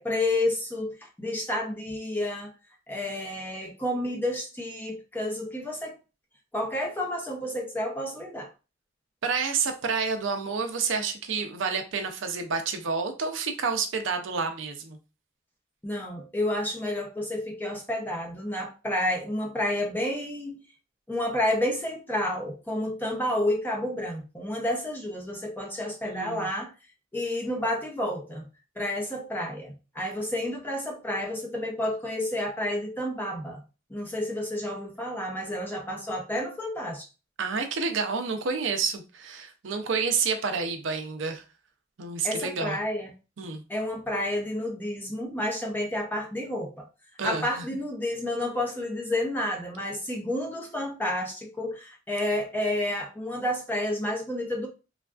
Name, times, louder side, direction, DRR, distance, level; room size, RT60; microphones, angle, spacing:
voice 1, 0.0-2.5 2.9-5.9 6.5-8.5 15.8-20.6 21.1-26.7 27.1-28.5 28.8-33.6 33.9-37.1 42.2-43.1 43.7-46.9 47.2-54.7, left 1 dB, 10° left, 0.6 m, -30 dB
voice 2, 9.2-15.0 26.0-26.5 37.4-41.4 42.0-42.8 43.4-43.6 47.2-47.7, right 5 dB, 70° right, 0.5 m, -29 dB
3.3 x 2.4 x 2.3 m
head